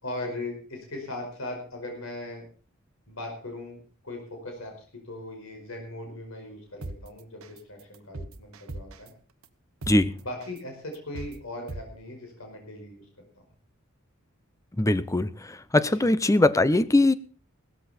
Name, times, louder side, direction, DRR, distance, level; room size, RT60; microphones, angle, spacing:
voice 1, 0.0-2.4 3.1-3.8 4.0-9.1 10.1-13.1 15.9-16.1, left 1 dB, 75° left, 2 dB, 5.0 m, -39 dB
sound 1, 6.8-7.0 7.4-7.6 7.9-9.1 9.4-9.5 9.8-10.0 10.4-10.6 10.9-11.3 11.7-11.8, right 2 dB, 75° right, 1.2 m, -37 dB
voice 2, 14.8-15.3 15.7-17.1, left 2 dB, 15° left, 15 dB, 0.7 m, -20 dB
16.5 x 13.5 x 4.3 m, 0.39 s
head